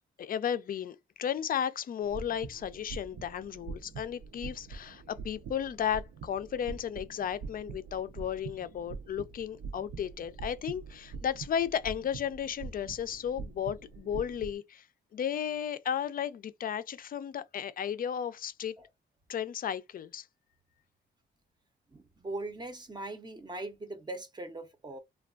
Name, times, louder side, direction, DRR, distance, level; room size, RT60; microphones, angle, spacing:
voice 1, 0.2-14.8 15.1-18.7 19.3-20.3, left 9 dB, 50° left, 0.4 m, -34 dB
sound 1, 2.0-14.6, right 5 dB, 80° right, 0.5 m, -44 dB
voice 2, 21.9-25.0, right 2 dB, 20° right, 0.5 m, -40 dB
3.3 x 2.3 x 2.3 m
wide cardioid pair, 125°, 20 cm